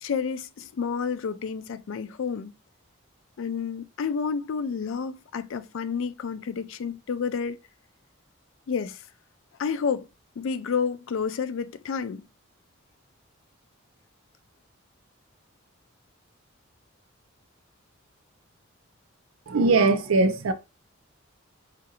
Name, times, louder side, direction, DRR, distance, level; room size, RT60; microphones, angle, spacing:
voice 1, 0.0-2.5 3.4-7.6 8.7-9.0 9.6-10.1 10.4-12.2, left 6 dB, 70° left, 0.4 m, -30 dB
voice 2, 19.5-20.5, right 3 dB, 90° right, 0.5 m, -21 dB
4.7 x 2.5 x 2.8 m
head